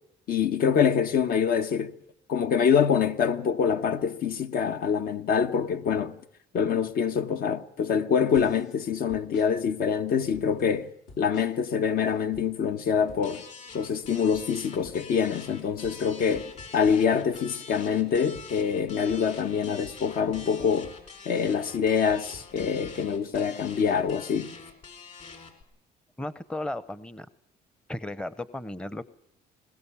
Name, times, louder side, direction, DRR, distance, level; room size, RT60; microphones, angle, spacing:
voice 1, 0.3-1.9 2.3-6.1 6.5-10.9 11.2-13.4 13.7-20.9 21.2-24.5, left 7 dB, 60° left, 1.3 m, -25 dB
sound 1, 8.3-8.8 9.1-9.5 10.1-10.7 11.1-11.7 12.0-12.5 13.1-13.7 13.9-17.7 18.1-18.5 19.1-21.7 22.1-24.2, left 3 dB, 80° left, 3.9 m, -50 dB
sound 2, 13.2-25.6, left 5 dB, 45° left, 4.6 m, -45 dB
voice 2, 26.2-27.3 27.9-29.0, left 1 dB, 5° left, 0.8 m, -35 dB
21.5 x 19.5 x 7.1 m
cardioid pair, 110°, 17 cm